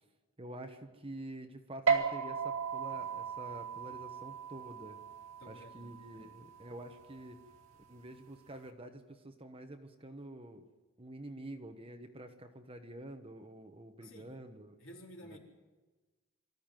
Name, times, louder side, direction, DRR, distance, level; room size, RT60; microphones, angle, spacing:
voice 1, 0.4-5.0 5.5-7.4 7.9-10.7 11.0-14.8 15.2-15.4, right 1 dB, 25° right, 6 dB, 1.2 m, -48 dB
sound 1, 1.9-8.7, right 6 dB, 70° right, 2.3 m, -37 dB
voice 2, 5.4-6.3 14.0-14.4 14.8-15.4, equal, 60° left, -1 dB, 4.3 m, -53 dB
25.0 x 14.0 x 9.1 m, 1.2 s
head